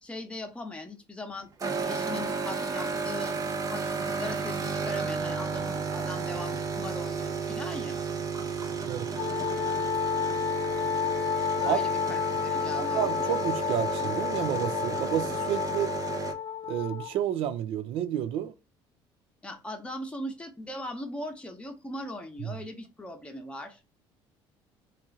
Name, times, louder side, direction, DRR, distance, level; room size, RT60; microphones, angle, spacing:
voice 1, 0.0-1.5 1.8-3.4 3.7-8.0 11.6-13.3 19.4-23.8, left 1 dB, 10° left, 0.9 m, -39 dB
sound 1, 1.6-16.3, right 5 dB, 35° right, 0.7 m, -33 dB
Wind instrument woodwind instrument, 9.1-17.2, left 8 dB, 40° left, 0.5 m, -31 dB
voice 2, 12.7-15.9 16.7-18.5 22.4-22.6, right 10 dB, 70° right, 0.4 m, -30 dB
2.9 x 2.5 x 3.8 m
cardioid pair, 100°, 10 cm